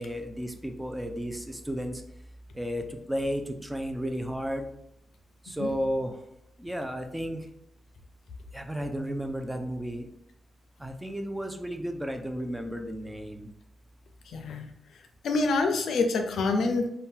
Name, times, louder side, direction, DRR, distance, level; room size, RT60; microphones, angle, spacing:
voice 1, 0.0-2.0 2.5-4.7 5.4-6.2 6.6-7.5 8.5-10.1 10.8-13.5, equal, 10° right, 5 dB, 0.4 m, -33 dB
voice 2, 14.3-14.7 15.2-16.9, left 3 dB, 75° left, 5 dB, 0.4 m, -26 dB
2.7 x 2.2 x 3.6 m, 0.78 s
cardioid pair, 100°, 0 cm